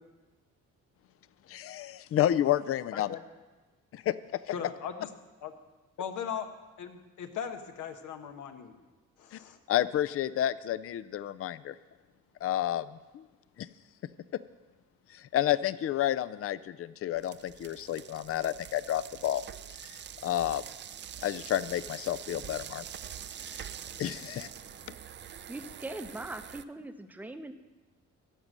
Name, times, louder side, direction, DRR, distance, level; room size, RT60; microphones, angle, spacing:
voice 1, 1.5-3.2 3.9-4.1 9.3-9.4 9.7-11.8 12.4-13.3 13.6-13.7 15.1-19.4 20.2-20.6 21.2-22.8 23.5-23.7 24.0-24.5, left 12 dB, 50° left, 17 dB, 0.5 m, -30 dB
voice 2, 4.5-5.1 5.4-5.5 6.0-6.5 6.8-8.8 9.2-9.6, left 7 dB, 80° left, 6 dB, 1.2 m, -38 dB
sound 1, 17.1-26.6, right 9 dB, 40° right, 0.4 m, -45 dB
voice 3, 25.5-27.5, right 2 dB, 5° right, 9 dB, 0.7 m, -41 dB
14.5 x 5.3 x 7.5 m, 1.2 s
cardioid pair, 90°, 30 cm